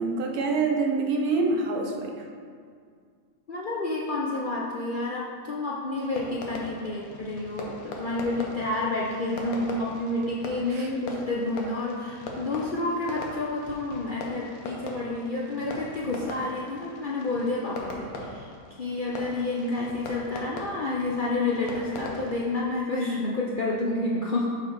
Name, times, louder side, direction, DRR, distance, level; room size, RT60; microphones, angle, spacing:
voice 1, 0.0-2.2 10.7-10.9, right 3 dB, 80° right, 1 dB, 1.3 m, -26 dB
voice 2, 3.5-24.6, left 2 dB, 60° left, -4 dB, 0.5 m, -29 dB
Fireworks, 5.9-22.4, left 2 dB, 75° left, 1.3 m, -41 dB
5.9 x 4.3 x 4.6 m, 2.1 s
omnidirectional pair, 1.6 m